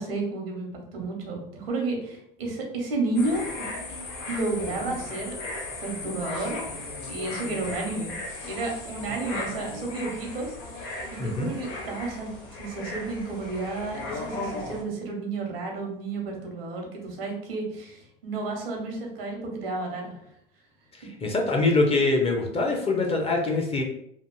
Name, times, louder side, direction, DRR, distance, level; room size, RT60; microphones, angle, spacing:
voice 1, 0.0-3.5 4.2-5.3 5.8-6.6 7.1-8.2 8.4-20.1 21.2-21.3, right 3 dB, 80° right, 1 dB, 0.9 m, -32 dB
sound 1, 3.1-14.8, left 2 dB, 50° left, 0.9 m, -36 dB
voice 2, 11.2-11.5 21.2-23.8, left 3 dB, 20° left, 2 dB, 0.5 m, -24 dB
2.8 x 2.4 x 2.3 m, 0.73 s
hypercardioid pair, 90°, 29 cm